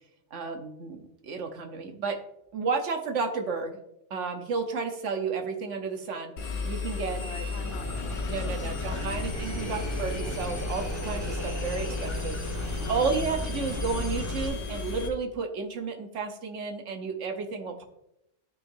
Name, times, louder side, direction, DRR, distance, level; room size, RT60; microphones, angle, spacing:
voice 1, 0.3-2.2 2.5-3.8 4.1-6.3 6.6-7.2 8.3-17.8, right 5 dB, 75° right, 6 dB, 1.2 m, -32 dB
Engine, 6.4-15.1, left 4 dB, 90° left, 1.5 m, -34 dB
voice 2, 7.2-9.3 9.6-9.9 12.8-13.3, left 4 dB, 60° left, 7 dB, 1.0 m, -45 dB
sound 1, 7.6-14.5, equal, 15° left, 1.5 m, -36 dB
12.0 x 4.8 x 2.6 m, 0.82 s
omnidirectional pair, 1.3 m